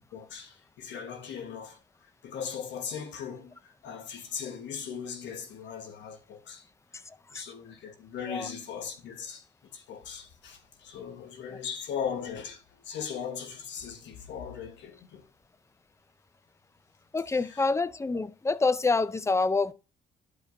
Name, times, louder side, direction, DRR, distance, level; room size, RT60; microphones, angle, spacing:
voice 1, 0.1-1.8 2.2-3.5 3.8-6.6 7.3-9.4 9.7-15.2 17.5-17.6, left 7 dB, 75° left, 1.2 m, -38 dB
voice 2, 7.1-7.5 8.3-8.5 17.1-19.7, left 3 dB, 15° left, 0.4 m, -27 dB
11.0 x 4.9 x 2.6 m
cardioid pair, 85°, 19 cm